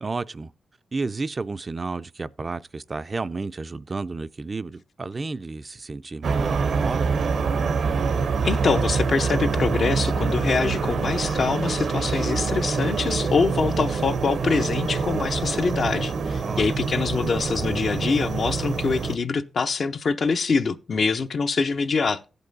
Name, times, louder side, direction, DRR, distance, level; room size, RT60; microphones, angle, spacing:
voice 1, 0.0-0.5 0.9-7.1 16.4-16.8, right 3 dB, 35° right, 0.4 m, -32 dB
sound 1, 6.2-19.1, right 5 dB, 75° right, 0.7 m, -25 dB
voice 2, 8.4-22.2, left 4 dB, 55° left, 0.6 m, -24 dB
15.5 x 5.4 x 3.9 m
wide cardioid pair, 105°, 0 cm